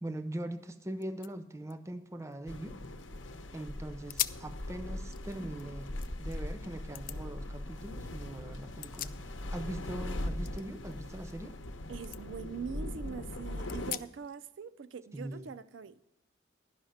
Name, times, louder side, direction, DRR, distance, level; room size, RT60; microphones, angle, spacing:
voice 1, 0.0-2.8 3.5-5.9 6.2-9.1 9.5-11.6 15.1-15.5, right 1 dB, 15° right, 0.5 m, -41 dB
sound 1, 0.6-0.7 1.0-3.2 3.6-3.7 4.1-4.5 5.0-6.4 6.9-7.2 8.5-9.7 9.9-11.7 12.0-12.2 12.7-12.8 13.7-14.4, left 14 dB, 45° left, 0.3 m, -42 dB
sound 2, 2.5-13.9, left 1 dB, 85° left, 0.8 m, -40 dB
voice 2, 11.9-16.1, right 6 dB, 75° right, 0.4 m, -43 dB
11.5 x 5.6 x 7.8 m
head